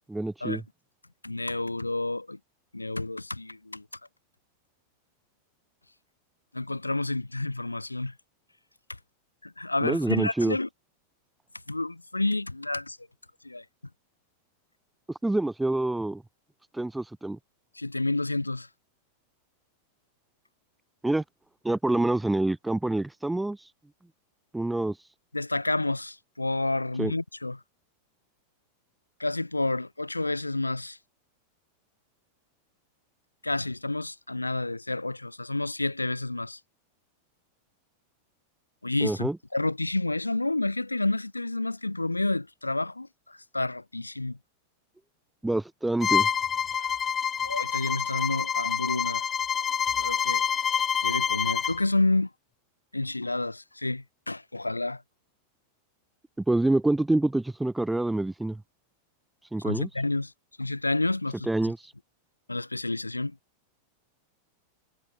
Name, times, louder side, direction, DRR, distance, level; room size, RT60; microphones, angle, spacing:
voice 1, 0.1-0.6 9.8-10.6 15.1-16.2 16.7-17.4 21.0-21.2 21.6-23.7 24.5-25.1 27.0-27.1 39.0-39.4 45.4-46.3 56.4-58.6 59.5-59.9 61.5-61.9, right 2 dB, 5° right, 4.0 m, -27 dB
voice 2, 1.2-2.4 2.7-3.8 6.5-8.1 9.4-10.7 11.7-13.0 13.4-13.6 17.8-18.7 25.3-27.6 29.2-31.0 33.4-36.6 38.8-44.4 46.7-47.1 47.4-49.3 50.0-50.5 51.0-52.3 52.9-55.0 59.6-60.3 60.6-61.7 62.5-63.4, left 2 dB, 85° left, 2.0 m, -30 dB
Bowed string instrument, 46.0-51.8, left 7 dB, 20° left, 5.2 m, -27 dB
figure-of-eight pair, 90°, 0 cm